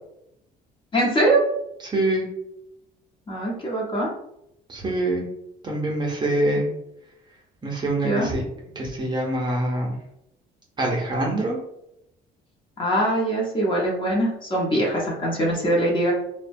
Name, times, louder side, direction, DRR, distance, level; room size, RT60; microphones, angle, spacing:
voice 1, 0.9-1.4 3.3-4.1 8.0-8.3 12.8-16.1, right 1 dB, 30° left, -3 dB, 0.8 m, -22 dB
voice 2, 1.8-2.3 4.7-5.3 5.6-6.7 7.6-8.4 8.8-9.9 10.8-11.6, right 1 dB, 25° right, -2 dB, 0.7 m, -24 dB
2.7 x 2.1 x 2.6 m, 0.82 s
cardioid pair, 110°, 17 cm